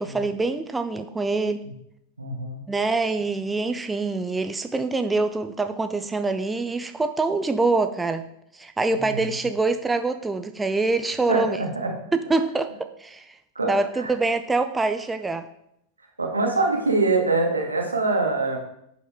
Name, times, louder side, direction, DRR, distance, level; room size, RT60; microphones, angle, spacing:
voice 1, 0.0-1.6 2.7-8.3 8.5-11.6 12.1-13.2 13.7-15.5, right 3 dB, 10° right, 9 dB, 0.5 m, -25 dB
voice 2, 2.2-2.6 8.9-9.2 11.3-11.9 13.6-14.1 16.2-18.6, right 3 dB, 80° right, 1 dB, 1.9 m, -24 dB
10.5 x 5.6 x 4.4 m, 0.75 s
figure-of-eight pair, 90°, 0 cm